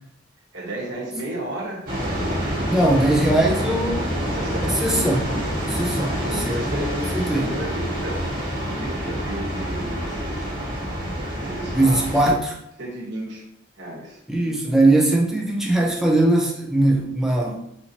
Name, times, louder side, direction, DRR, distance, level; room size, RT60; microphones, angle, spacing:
voice 1, 0.5-1.8 4.2-4.7 6.0-8.3 8.8-10.4 11.4-12.3 12.8-13.4 13.8-14.2 14.7-14.8, right 1 dB, 65° right, -4 dB, 1.3 m, -33 dB
sound 1, 1.9-12.3, equal, 45° right, 1.4 m, -27 dB
voice 2, 2.7-4.2 4.7-6.6 7.1-7.5 11.7-12.4 14.3-17.6, right 1 dB, ahead, -1 dB, 0.4 m, -20 dB
4.3 x 2.7 x 2.8 m, 0.78 s
head